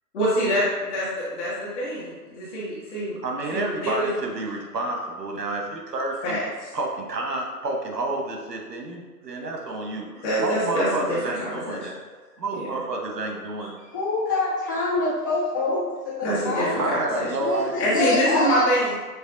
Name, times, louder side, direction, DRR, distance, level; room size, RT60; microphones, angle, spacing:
voice 1, 0.1-0.6 0.9-1.0 1.4-3.2 3.5-4.1 6.2-6.4 10.2-11.8 16.2-17.3 17.8-19.0, equal, 45° left, -9 dB, 1.5 m, -25 dB
voice 2, 3.2-6.4 6.7-10.1 10.4-12.0 12.4-13.8 16.8-17.9, right 2 dB, 80° right, 0 dB, 1.1 m, -29 dB
voice 3, 13.9-17.0 17.4-18.7, left 2 dB, 15° left, -10 dB, 0.4 m, -25 dB
6.2 x 2.7 x 2.5 m, 1.4 s
figure-of-eight pair, 130°, 48 cm